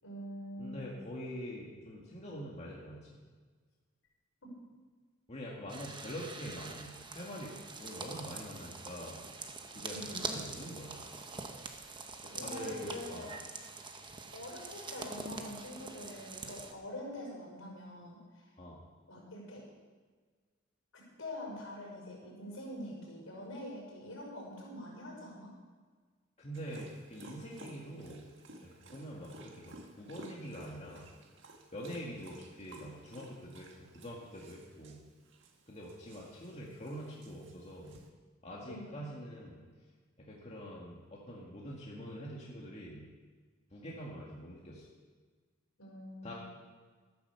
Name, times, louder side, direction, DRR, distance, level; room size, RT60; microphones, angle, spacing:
voice 1, 0.0-1.1 4.4-4.5 9.9-10.1 12.3-13.3 14.3-18.5 19.1-19.7 20.9-25.5 38.7-38.9 45.8-46.4, left 1 dB, 75° left, -3 dB, 5.6 m, -45 dB
voice 2, 0.6-3.2 5.3-9.2 9.7-11.0 12.2-13.3 18.6-18.8 26.4-28.3 28.6-31.1 31.7-35.0 35.7-38.0 38.4-39.7 40.2-43.1 43.7-44.9 46.2-46.3, equal, 30° left, -4 dB, 2.1 m, -45 dB
sound 1, 5.7-16.7, right 4 dB, 25° right, 1.0 m, -44 dB
Dog, 26.5-38.1, right 2 dB, 60° right, 1.7 m, -55 dB
13.0 x 10.5 x 6.9 m, 1.5 s
head